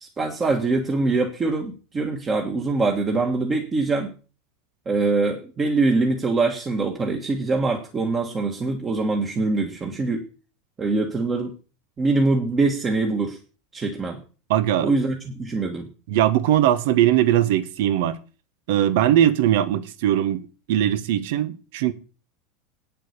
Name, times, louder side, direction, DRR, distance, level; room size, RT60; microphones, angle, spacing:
voice 1, 0.0-4.1 4.8-10.2 10.8-11.5 12.0-13.4 13.7-14.2 14.8-15.9, right 3 dB, 20° right, 1.6 m, -23 dB
voice 2, 14.5-14.9 16.1-18.2 18.7-20.4 20.7-21.9, right 11 dB, 70° right, 1.3 m, -20 dB
9.2 x 7.6 x 6.7 m
supercardioid pair, 155°, 0 cm